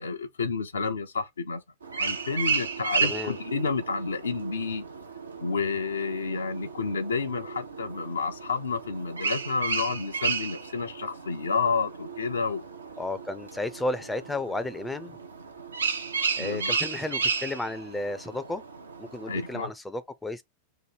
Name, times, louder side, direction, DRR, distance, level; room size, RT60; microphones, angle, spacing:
voice 1, 0.0-1.6 2.0-4.8 5.4-12.6 16.4-16.8 19.3-19.7, left 4 dB, 70° left, 0.6 m, -30 dB
sound 1, 1.8-19.6, right 5 dB, 75° right, 0.7 m, -33 dB
voice 2, 3.0-3.4 13.0-15.2 16.4-18.6 19.0-20.4, left 2 dB, 10° left, 0.5 m, -33 dB
3.0 x 2.6 x 4.0 m
figure-of-eight pair, 90°, 0 cm